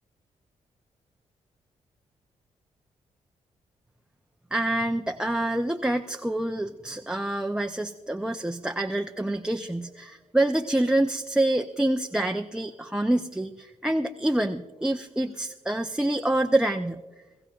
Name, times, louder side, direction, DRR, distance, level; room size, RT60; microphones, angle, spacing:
voice 1, 4.5-17.0, right 1 dB, 5° right, 4 dB, 0.6 m, -26 dB
22.0 x 15.0 x 2.4 m, 1.2 s
supercardioid pair, 50°, 14 cm